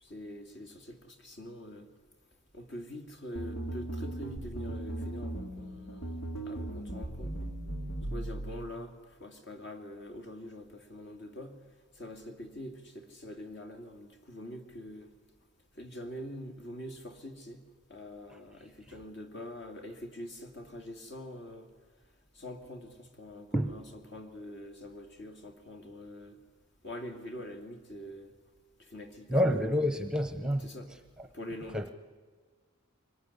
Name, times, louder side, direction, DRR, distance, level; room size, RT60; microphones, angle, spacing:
voice 1, 0.0-1.9 2.5-6.2 6.4-7.5 8.1-11.6 12.0-15.1 15.8-17.6 17.9-21.7 22.3-26.4 26.8-28.3 28.8-29.7 30.6-30.9 31.3-31.9, left 1 dB, 50° left, 2.5 m, -44 dB
sound 1, 3.4-8.7, right 1 dB, 90° left, 2.7 m, -38 dB
voice 2, 29.3-30.7 31.7-31.9, equal, 5° right, 0.9 m, -28 dB
24.0 x 20.0 x 9.9 m
head